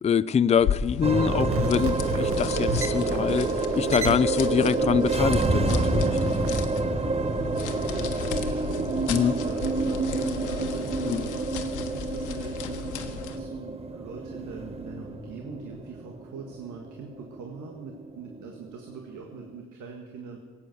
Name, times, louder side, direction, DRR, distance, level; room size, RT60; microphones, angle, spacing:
voice 1, 0.0-6.4 9.1-9.3 11.0-11.3, left 7 dB, 20° left, 0.4 m, -25 dB
sound 1, 0.6-13.5, left 7 dB, 80° left, 1.3 m, -35 dB
sound 2, 1.0-19.5, right 3 dB, 20° right, 0.9 m, -29 dB
sound 3, 1.2-6.6, right 3 dB, 45° right, 1.7 m, -31 dB
voice 2, 7.3-20.4, right 4 dB, 80° right, 1.7 m, -42 dB
17.0 x 8.5 x 7.8 m
cardioid pair, 90°, 30 cm